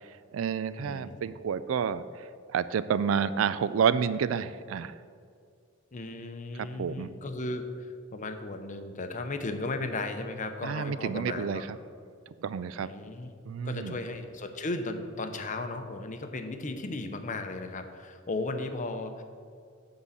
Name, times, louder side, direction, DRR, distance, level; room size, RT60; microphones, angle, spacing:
voice 1, 0.0-5.0 6.5-7.1 10.6-11.8 12.3-12.9 13.5-14.0, right 7 dB, 70° right, 15 dB, 0.3 m, -30 dB
voice 2, 0.8-1.2 5.9-11.6 12.8-13.3 13.6-19.2, left 2 dB, 40° left, 7 dB, 0.7 m, -35 dB
9.7 x 3.8 x 7.2 m, 2.2 s
head